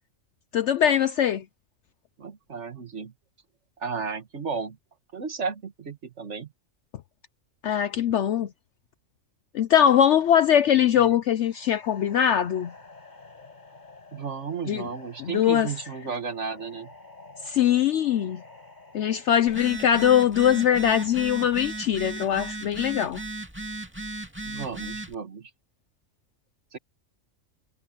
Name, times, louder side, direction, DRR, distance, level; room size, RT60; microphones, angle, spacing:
voice 1, 0.5-1.4 7.6-8.5 9.5-12.7 14.7-14.8 15.2-15.7 17.4-18.4 18.9-23.2, left 9 dB, 65° left, 0.9 m, -21 dB
voice 2, 2.2-3.1 3.8-4.8 5.1-6.5 11.0-11.2 14.1-16.9 24.5-25.5 26.7-26.8, right 5 dB, 60° right, 1.9 m, -34 dB
sound 1, 11.3-22.4, left 3 dB, 35° left, 5.3 m, -50 dB
Telephone, 19.5-25.1, right 2 dB, 10° right, 2.2 m, -36 dB
omnidirectional pair, 1.4 m